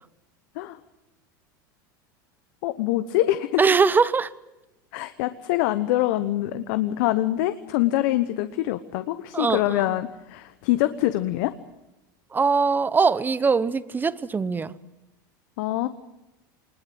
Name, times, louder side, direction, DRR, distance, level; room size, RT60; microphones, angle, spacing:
voice 1, 2.6-3.6 4.9-11.5 15.6-15.9, left 15 dB, 65° left, 1.0 m, -24 dB
voice 2, 3.6-4.3 9.3-9.8 12.3-14.7, right 5 dB, 15° right, 0.9 m, -21 dB
20.5 x 20.5 x 7.8 m
supercardioid pair, 110°, 11 cm